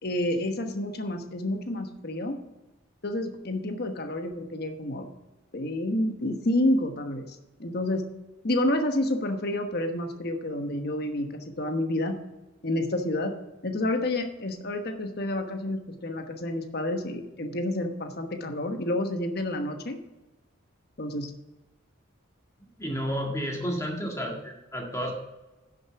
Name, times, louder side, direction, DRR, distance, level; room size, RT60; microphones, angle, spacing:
voice 1, 0.0-2.4 3.0-5.1 5.5-8.0 8.4-12.2 12.6-13.3 13.6-20.0 21.0-21.3, left 1 dB, 50° left, 6 dB, 1.2 m, -29 dB
voice 2, 22.8-25.1, equal, 15° left, 0 dB, 1.9 m, -31 dB
10.5 x 6.5 x 5.9 m, 1.1 s
head